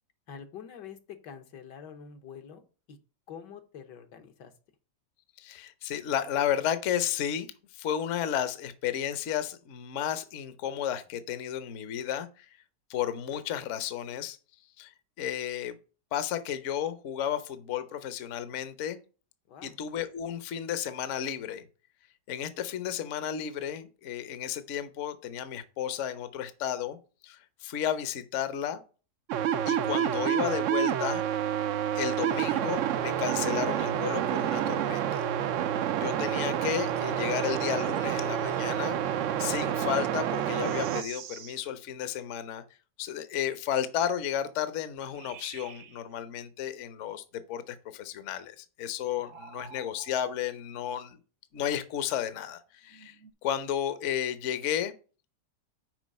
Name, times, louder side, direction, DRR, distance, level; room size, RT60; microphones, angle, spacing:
voice 1, 0.3-2.6 2.9-3.0 3.3-4.5 19.5-19.8 35.9-36.2 49.2-49.3, left 7 dB, 80° left, 1.7 m, -46 dB
voice 2, 5.4-7.5 7.7-12.5 12.9-14.4 14.8-14.9 15.2-15.8 16.1-19.0 19.6-21.6 22.3-27.0 27.2-28.8 29.7-31.2 31.9-35.3 35.9-42.6 43.0-51.2 51.5-53.2 53.4-54.9, left 10 dB, 55° left, 0.9 m, -33 dB
sound 1, 29.3-41.0, right 10 dB, 80° right, 0.7 m, -28 dB
sound 2, 40.3-41.7 45.0-46.0 49.2-50.4 52.9-53.3, right 8 dB, 60° right, 0.9 m, -48 dB
6.1 x 4.8 x 6.5 m
omnidirectional pair, 1.9 m